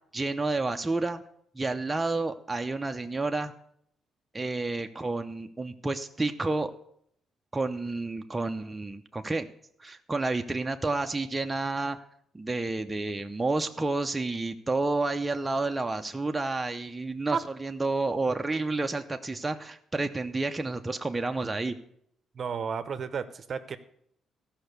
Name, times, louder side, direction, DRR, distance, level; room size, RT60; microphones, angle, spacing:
voice 1, 0.1-1.2 1.5-3.5 4.3-6.7 7.5-9.5 9.8-12.0 12.3-21.8, right 3 dB, 15° right, 5 dB, 0.7 m, -30 dB
voice 2, 22.3-23.8, right 6 dB, 50° right, 11 dB, 0.8 m, -32 dB
13.5 x 5.7 x 6.7 m, 0.69 s
cardioid pair, 90°, 0 cm